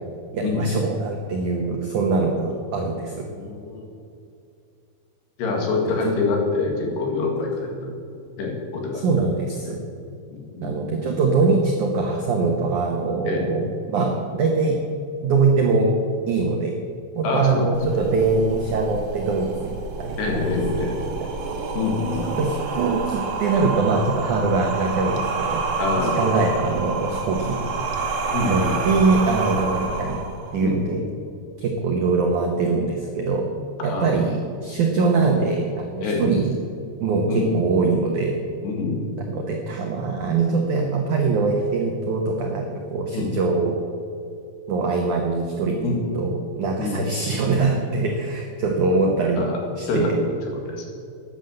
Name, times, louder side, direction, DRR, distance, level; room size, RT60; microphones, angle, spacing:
voice 1, 0.3-3.2 6.0-6.1 9.0-9.8 10.6-14.8 15.2-15.9 16.3-16.7 17.1-20.5 21.2-21.3 22.2-25.6 26.0-27.6 28.5-30.3 30.5-31.0 31.6-33.4 33.8-36.6 37.0-38.3 39.3-43.8 44.7-49.5 49.8-50.2, right 4 dB, 85° right, 2 dB, 1.7 m, -23 dB
voice 2, 3.3-3.9 5.4-8.0 8.4-9.1 9.6-9.8 10.3-10.9 13.3-13.5 17.2-18.0 20.2-21.0 21.7-22.4 24.5-24.6 25.8-26.3 28.3-28.8 30.6-31.0 33.8-34.2 36.0-36.3 37.3-37.5 38.6-39.0 43.1-43.3 45.8-46.0 46.8-47.0 49.4-49.6 49.9-50.9, left 3 dB, 65° left, 1 dB, 4.1 m, -26 dB
sound 1, 17.7-30.7, right 4 dB, 60° right, 2.8 m, -28 dB
13.0 x 10.0 x 7.9 m, 2.5 s
omnidirectional pair, 5.4 m